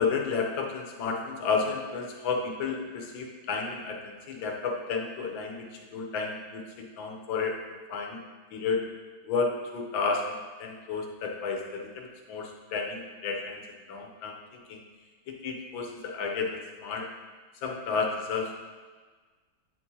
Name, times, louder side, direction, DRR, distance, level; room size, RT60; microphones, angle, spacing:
voice 1, 0.0-7.6 7.9-8.2 8.5-8.8 9.2-13.6 13.9-14.8 15.3-17.1 17.6-18.6, left 4 dB, 75° left, 1 dB, 1.5 m, -32 dB
8.9 x 4.5 x 2.8 m, 1.4 s
omnidirectional pair, 2.2 m